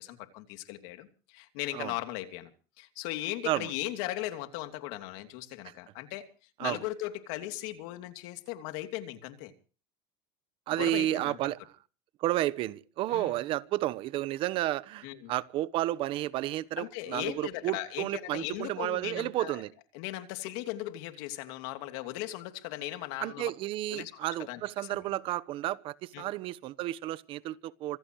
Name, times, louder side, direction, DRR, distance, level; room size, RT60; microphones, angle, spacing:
voice 1, 0.0-2.5 2.8-6.3 6.6-9.5 10.8-11.4 13.1-13.4 15.0-15.3 16.8-19.6 19.9-23.5 23.9-25.1 26.1-26.3, left 15 dB, 75° left, 2.9 m, -38 dB
voice 2, 10.7-11.6 12.2-19.7 23.2-28.0, right 15 dB, 55° right, 1.1 m, -32 dB
26.0 x 15.5 x 3.2 m
supercardioid pair, 110°, 11 cm